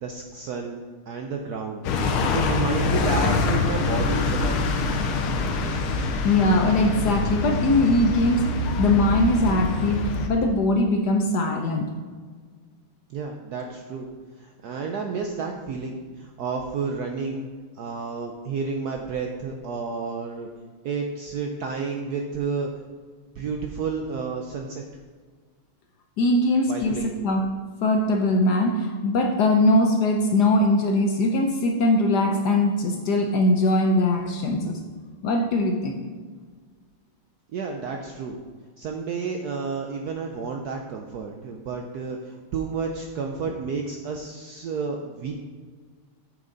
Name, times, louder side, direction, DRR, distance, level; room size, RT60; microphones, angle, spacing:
voice 1, 0.0-0.8 1.1-1.8 2.3-4.6 13.1-14.1 14.4-17.5 17.7-20.5 20.8-22.7 23.4-24.8 26.7-27.1 37.5-38.4 38.8-45.3, right 5 dB, 70° right, 2 dB, 0.9 m, -31 dB
sound 1, 1.8-10.3, left 3 dB, 85° left, 1.6 m, -25 dB
voice 2, 6.2-8.5 8.8-11.9 26.2-27.4 27.8-34.8 35.2-35.9, left 2 dB, 70° left, 3 dB, 1.1 m, -21 dB
8.9 x 6.5 x 3.9 m, 1.5 s
omnidirectional pair, 2.3 m